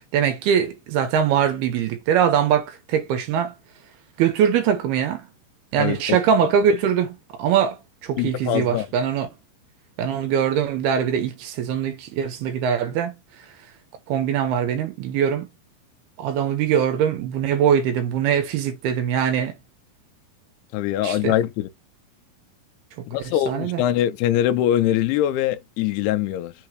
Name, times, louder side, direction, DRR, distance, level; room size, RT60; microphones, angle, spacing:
voice 1, 0.1-3.5 4.2-5.2 5.7-7.8 8.0-9.3 10.0-13.2 14.1-15.5 16.2-19.5 21.0-21.3 23.5-23.8, right 8 dB, 75° right, 2.8 m, -22 dB
voice 2, 5.8-6.2 8.2-8.9 20.7-21.7 23.1-26.5, left 12 dB, 80° left, 2.6 m, -23 dB
6.6 x 3.0 x 4.7 m
omnidirectional pair, 5.0 m